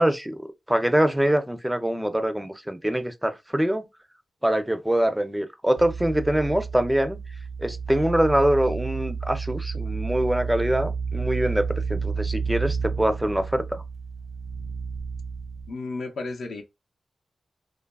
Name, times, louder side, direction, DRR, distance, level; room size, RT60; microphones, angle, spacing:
voice 1, 0.0-3.9 4.4-7.2 7.6-13.8, right 1 dB, 5° right, 0.4 m, -24 dB
sound 1, 5.8-15.7, right 5 dB, 55° right, 0.6 m, -31 dB
voice 2, 15.7-16.6, left 3 dB, 85° left, 0.5 m, -33 dB
2.8 x 2.3 x 2.2 m
wide cardioid pair, 105°, 0 cm